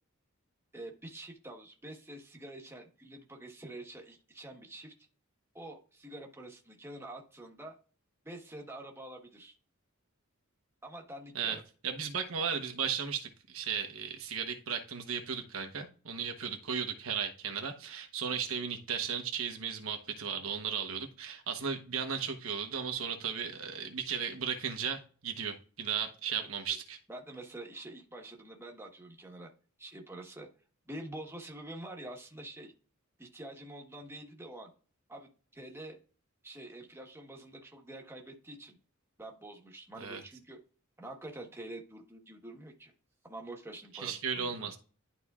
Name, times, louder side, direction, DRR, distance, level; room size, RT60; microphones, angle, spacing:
voice 1, 0.7-4.9 5.5-7.8 8.2-9.5 10.8-11.6 26.4-26.5 27.1-29.5 29.8-30.5 30.9-32.7 33.2-34.7 35.1-36.0 36.4-38.8 39.2-40.6 41.0-42.9 43.2-44.7, right 1 dB, 10° right, 1 dB, 1.2 m, -46 dB
voice 2, 11.8-27.0 40.0-40.2 43.9-44.8, right 7 dB, 75° right, 5 dB, 1.1 m, -35 dB
11.5 x 4.2 x 2.4 m, 0.38 s
head